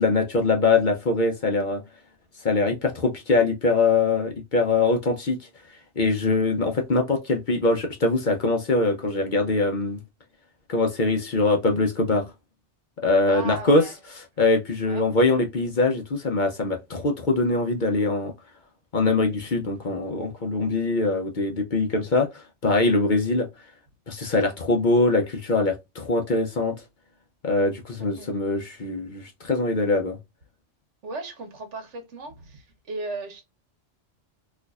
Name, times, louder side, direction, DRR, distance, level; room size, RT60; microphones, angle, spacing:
voice 1, 0.0-1.8 2.4-5.5 6.0-10.0 10.7-12.3 13.0-13.8 14.4-18.3 18.9-23.5 24.1-26.8 27.4-30.2, left 3 dB, 50° left, 0.7 m, -23 dB
voice 2, 13.3-13.9 14.8-15.0 28.2-28.3 31.0-33.4, right 2 dB, 75° right, 1.4 m, -36 dB
4.2 x 2.5 x 2.3 m
omnidirectional pair, 1.2 m